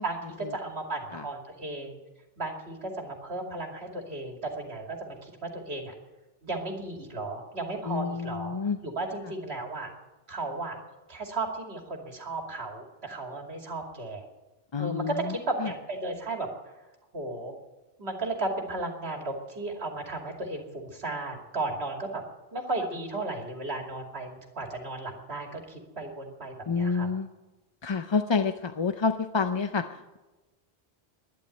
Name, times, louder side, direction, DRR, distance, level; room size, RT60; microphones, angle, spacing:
voice 1, 0.0-2.0 2.4-5.9 6.4-9.9 10.3-10.8 11.1-14.2 14.8-16.5 17.1-17.6 18.0-22.2 22.5-27.1, right 2 dB, 85° right, 2 dB, 2.9 m, -35 dB
voice 2, 7.8-8.8 14.7-15.3 15.6-15.7 26.7-27.3 27.8-30.2, left 5 dB, 35° left, 8 dB, 0.5 m, -28 dB
12.0 x 11.5 x 9.0 m, 1.1 s
omnidirectional pair, 1.0 m